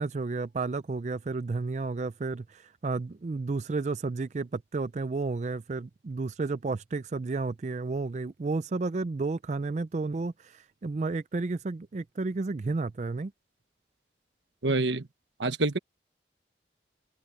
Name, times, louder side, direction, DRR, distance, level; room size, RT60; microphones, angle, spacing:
voice 1, 0.0-13.3, right 3 dB, 40° right, 0.4 m, -32 dB
voice 2, 14.6-15.0 15.4-15.8, right 2 dB, 85° right, 1.3 m, -26 dB
head